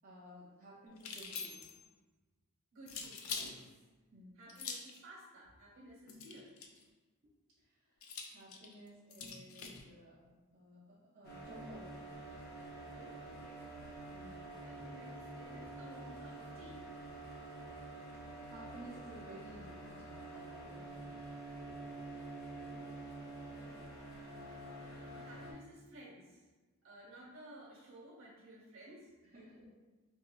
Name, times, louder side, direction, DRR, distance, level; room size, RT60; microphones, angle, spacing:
voice 1, 0.0-1.6 4.1-4.4 7.6-7.7 8.3-10.3 10.5-12.0 14.1-14.4 14.7-14.8 15.2-15.7 18.5-21.2 29.3-29.7, equal, 35° right, -9 dB, 0.6 m, -55 dB
sound 1, 1.0-1.9 2.9-3.5 4.5-5.0 6.1-6.8 8.0-9.8, left 5 dB, 75° left, 0.4 m, -44 dB
voice 2, 2.7-3.8 4.4-6.6 12.9-13.6 14.6-16.8 22.5-23.0 23.2-24.0 24.8-26.5 26.8-29.4, right 1 dB, 65° right, -4 dB, 1.1 m, -56 dB
sound 2, 11.2-25.5, right 2 dB, 45° left, 0.7 m, -48 dB
3.6 x 2.8 x 2.3 m, 1.2 s
head